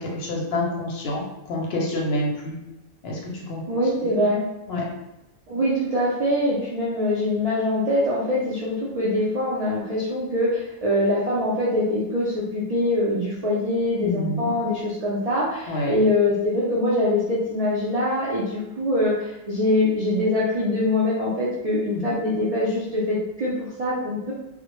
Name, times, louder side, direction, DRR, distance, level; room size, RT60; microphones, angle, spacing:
voice 1, 0.0-2.5 3.0-3.6 4.7-4.8 14.0-14.5 15.7-15.9 21.9-22.2, left 1 dB, 60° left, -2 dB, 0.7 m, -27 dB
voice 2, 3.7-4.4 5.5-24.3, left 1 dB, 75° right, -6 dB, 0.3 m, -23 dB
2.1 x 2.1 x 2.9 m, 0.94 s
omnidirectional pair, 1.3 m